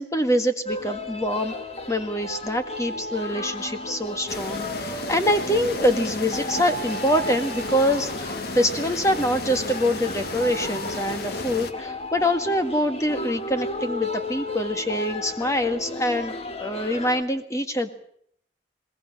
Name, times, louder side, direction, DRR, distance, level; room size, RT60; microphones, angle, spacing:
voice 1, 0.0-1.5 1.9-17.9, equal, 15° left, 7 dB, 1.7 m, -25 dB
sound 1, 0.7-17.2, left 1 dB, 35° left, 1.7 m, -34 dB
sound 2, 4.3-11.7, left 2 dB, 55° left, 1.8 m, -33 dB
21.0 x 20.5 x 7.4 m, 0.67 s
head